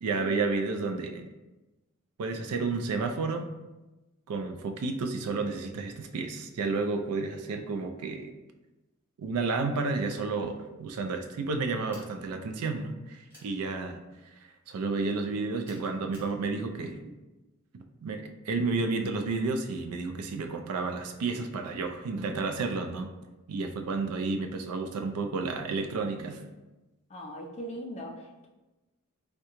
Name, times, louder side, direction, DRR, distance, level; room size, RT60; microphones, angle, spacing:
voice 1, 0.0-1.3 2.2-3.5 4.3-8.3 9.2-14.0 14.4-17.0 17.7-23.2 23.5-26.4, right 3 dB, 80° right, 5 dB, 0.4 m, -31 dB
sound 1, 11.9-12.2 13.3-13.5 15.6-16.3, equal, 10° right, 1.0 m, -53 dB
voice 2, 27.1-28.5, equal, 30° left, 1 dB, 0.4 m, -40 dB
3.6 x 2.2 x 2.9 m, 1.1 s
head